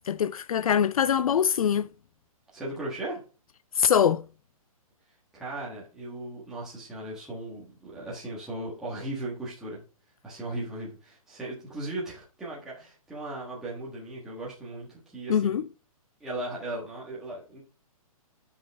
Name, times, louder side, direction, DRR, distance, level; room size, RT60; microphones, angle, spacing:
voice 1, 0.1-1.9 3.7-4.3 15.3-15.7, left 8 dB, 70° left, 0.5 m, -23 dB
voice 2, 2.5-3.2 5.3-9.8 10.2-15.6 16.2-17.6, right 1 dB, 5° right, 1.4 m, -37 dB
8.9 x 5.5 x 3.5 m
hypercardioid pair, 175°, 19 cm